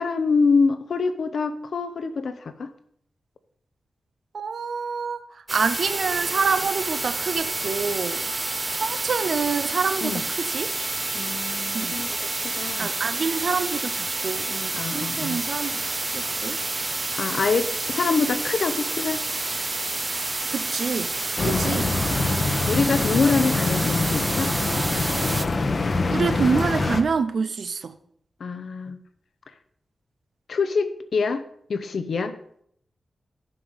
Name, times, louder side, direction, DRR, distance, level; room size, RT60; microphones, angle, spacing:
voice 1, 0.0-2.7 10.0-10.2 11.1-12.9 14.8-15.4 17.2-19.2 21.4-24.5 28.4-29.0 30.5-31.4 31.7-32.4, left 4 dB, 75° left, 0.8 m, -25 dB
voice 2, 4.3-5.2 5.5-8.2 8.7-10.7 11.7-12.0 12.8-15.8 16.1-16.6 20.5-21.1 21.4-21.9 26.1-27.9, right 5 dB, 75° right, 0.6 m, -27 dB
sound 1, 5.5-25.5, right 2 dB, 30° right, 0.6 m, -29 dB
sound 2, 21.4-27.0, left 3 dB, 50° left, 0.9 m, -24 dB
7.7 x 5.3 x 6.5 m
wide cardioid pair, 85°, 0 cm